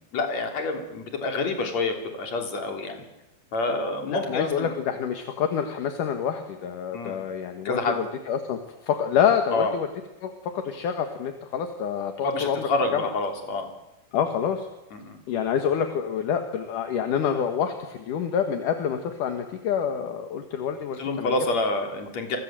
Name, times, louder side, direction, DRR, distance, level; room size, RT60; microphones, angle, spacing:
voice 1, 0.1-3.0 3.5-4.7 6.9-7.2 7.6-8.0 9.5-9.7 12.2-13.7 14.9-15.2 21.0-22.4, left 2 dB, 40° left, 4 dB, 4.2 m, -27 dB
voice 2, 4.1-9.9 10.2-13.0 14.1-14.7 15.3-21.4, left 8 dB, 60° left, 6 dB, 2.7 m, -27 dB
29.0 x 24.0 x 7.7 m, 0.94 s
omnidirectional pair, 5.0 m